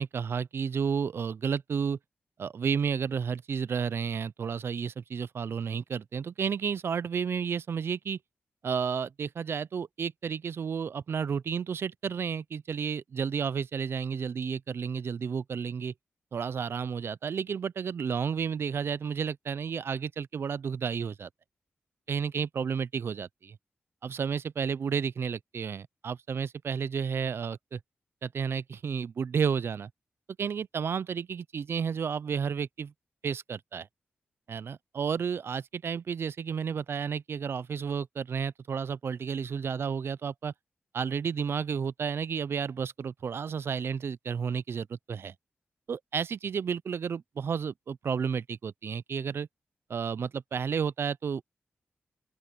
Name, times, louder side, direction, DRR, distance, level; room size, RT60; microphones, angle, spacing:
voice 1, 0.0-2.0 2.4-8.2 8.6-15.9 16.3-21.3 22.1-23.6 24.0-27.8 28.2-29.9 30.4-32.9 33.2-33.9 34.5-40.5 40.9-45.3 45.9-49.5 49.9-51.4, right 6 dB, 65° right, 0.5 m, -32 dB
open air
cardioid pair, 60°, 4 cm